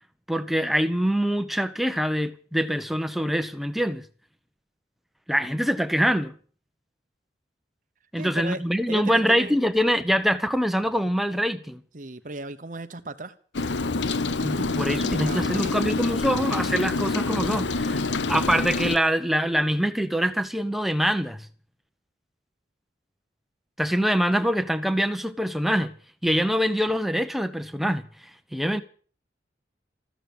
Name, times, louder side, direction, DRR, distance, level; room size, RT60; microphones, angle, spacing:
voice 1, 0.3-4.0 5.3-6.3 8.1-11.8 14.4-18.0 18.3-21.5 23.8-25.9 26.2-28.1 28.5-28.8, equal, ahead, 1.0 m, -24 dB
voice 2, 8.2-9.6 11.9-13.3 14.5-15.8, right 2 dB, 45° right, 0.9 m, -37 dB
Rain, 13.5-19.0, left 3 dB, 85° left, 0.8 m, -26 dB
14.5 x 13.0 x 7.2 m
head